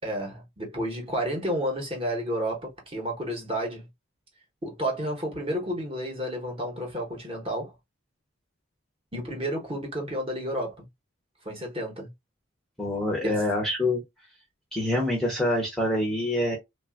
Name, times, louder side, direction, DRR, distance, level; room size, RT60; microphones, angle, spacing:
voice 1, 0.0-3.9 4.6-7.7 9.1-10.8 11.4-12.1 13.2-13.4, equal, 25° right, 0.9 m, -31 dB
voice 2, 12.8-14.0 14.7-16.6, left 1 dB, ahead, 0.6 m, -26 dB
3.1 x 2.3 x 2.3 m
head